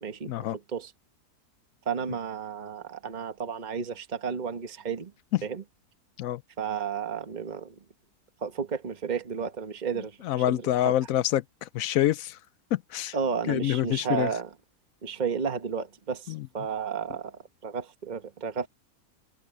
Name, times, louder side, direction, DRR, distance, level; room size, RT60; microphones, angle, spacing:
voice 1, 0.0-0.3 0.7-0.9 1.8-5.1 5.4-5.6 6.6-7.7 8.4-10.9 13.1-14.5 15.0-18.7, right 6 dB, 30° right, 1.4 m, -32 dB
voice 2, 10.2-12.4 12.7-13.2 13.5-14.3 16.3-16.5, left 13 dB, 70° left, 0.9 m, -26 dB
omnidirectional pair, 1.6 m